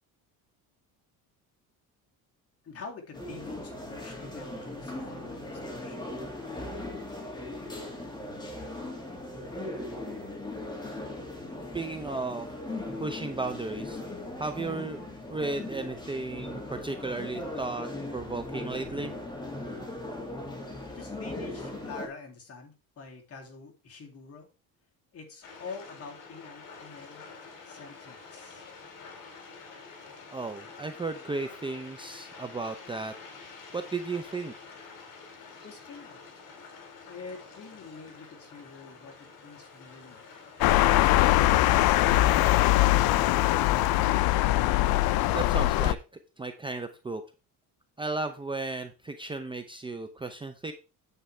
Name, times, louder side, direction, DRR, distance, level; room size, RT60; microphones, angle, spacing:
voice 1, 2.6-6.1 20.9-24.5 25.1-27.2 27.6-28.6 35.6-36.2 37.1-40.3, left 4 dB, 40° left, 1 dB, 2.6 m, -46 dB
sound 1, 3.1-22.1, left 2 dB, 10° left, 2.3 m, -39 dB
voice 2, 11.7-12.5 13.0-14.0 14.4-19.1 30.3-33.1 33.7-34.5 45.3-46.0 46.4-47.2 48.0-50.7, right 3 dB, 15° right, 6 dB, 0.7 m, -34 dB
sound 2, 25.4-45.1, left 4 dB, 55° left, 3.1 m, -47 dB
sound 3, 40.6-45.9, left 16 dB, 75° left, 0.6 m, -22 dB
9.0 x 8.1 x 3.3 m, 0.31 s
cardioid pair, 130°, 37 cm